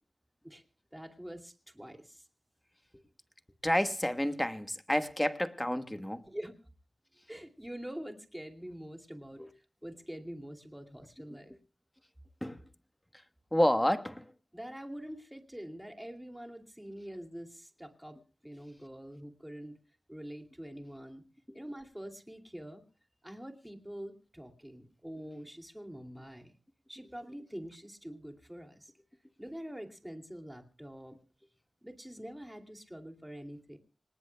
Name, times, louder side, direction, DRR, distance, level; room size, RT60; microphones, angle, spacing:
voice 1, 0.9-2.3 6.2-6.6 7.3-11.5 14.5-18.2 18.4-19.8 20.1-21.2 21.5-22.8 23.2-26.5 26.9-28.9 29.4-31.2 31.8-33.8, equal, 5° right, 2.5 m, -45 dB
voice 2, 3.6-6.2 9.4-9.5 12.4-12.6 13.5-14.2, left 1 dB, 10° left, 1.2 m, -29 dB
26.0 x 19.0 x 2.2 m
wide cardioid pair, 85°, 0 cm